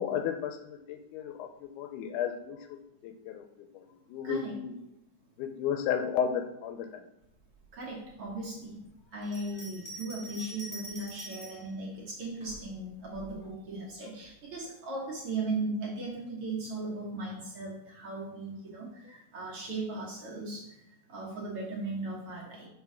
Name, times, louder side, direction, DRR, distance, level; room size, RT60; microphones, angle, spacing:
voice 1, 0.0-3.5 3.7-3.8 4.1-4.8 5.4-7.0, left 8 dB, 80° left, 7 dB, 2.0 m, -33 dB
voice 2, 7.8-8.8 9.1-20.6 21.1-22.7, right 2 dB, 55° right, -5 dB, 1.9 m, -37 dB
Bell, 9.2-11.7 12.4-13.3, equal, 15° left, 1.1 m, -45 dB
6.0 x 3.9 x 5.6 m, 0.84 s
omnidirectional pair, 3.7 m